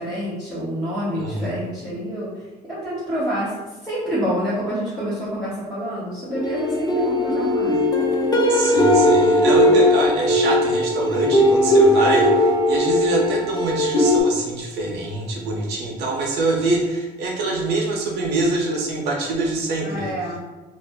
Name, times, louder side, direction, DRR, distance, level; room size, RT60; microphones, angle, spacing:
voice 1, 0.0-2.3 2.6-3.5 3.8-7.9 9.7-9.8 19.8-20.4, equal, ahead, -12 dB, 1.0 m, -27 dB
voice 2, 1.1-1.5 8.5-20.1, right 2 dB, 80° right, -1 dB, 0.7 m, -24 dB
sound 1, 6.3-14.2, left 1 dB, 25° left, 0.5 m, -18 dB
2.4 x 2.1 x 3.4 m, 1.2 s
cardioid pair, 110°, 17 cm